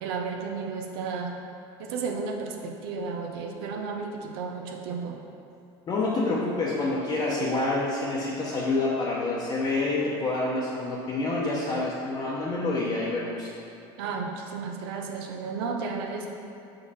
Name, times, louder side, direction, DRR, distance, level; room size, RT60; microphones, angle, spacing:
voice 1, 0.0-1.4 1.8-5.2 14.0-16.3, right 4 dB, 85° right, 2 dB, 0.8 m, -33 dB
voice 2, 5.9-13.5, left 2 dB, 35° left, -5 dB, 0.8 m, -27 dB
5.7 x 5.3 x 4.2 m, 2.7 s
supercardioid pair, 130°, 12 cm